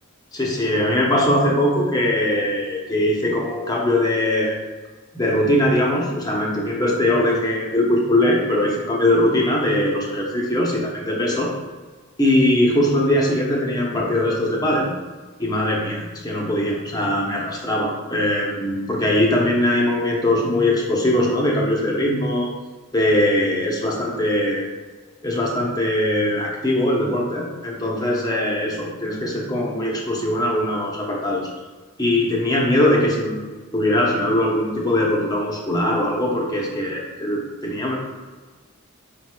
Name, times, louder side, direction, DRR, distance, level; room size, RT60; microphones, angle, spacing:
voice 1, 0.3-4.6 5.1-11.5 12.2-14.9 15.4-22.5 22.9-24.6 25.2-31.5 32.0-33.4 33.7-38.0, left 1 dB, 15° left, -3 dB, 0.7 m, -21 dB
5.0 x 4.4 x 2.3 m, 1.4 s
head